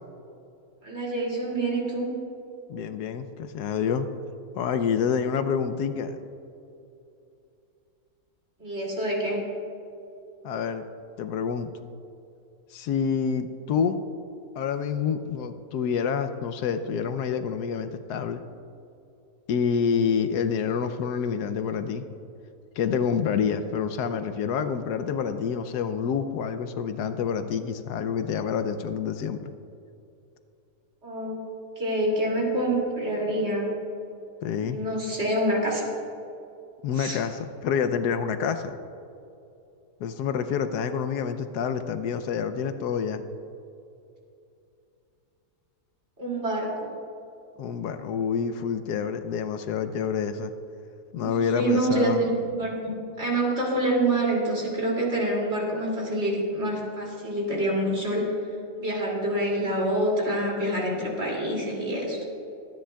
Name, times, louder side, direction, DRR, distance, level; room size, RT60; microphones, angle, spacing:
voice 1, 0.8-2.1 8.6-9.5 31.0-31.4 31.8-33.7 34.7-35.9 37.0-37.2 46.2-46.9 51.1-58.3 58.8-62.2, right 1 dB, 40° right, -3 dB, 2.9 m, -26 dB
voice 2, 2.7-4.1 4.5-6.2 10.4-10.8 11.2-11.7 12.7-14.0 14.6-18.4 19.5-22.0 22.8-29.5 34.4-34.8 36.8-38.7 40.0-43.2 47.6-50.5 51.1-52.2, left 7 dB, 80° left, 9 dB, 1.1 m, -27 dB
24.0 x 10.0 x 2.3 m, 2.7 s
omnidirectional pair, 1.7 m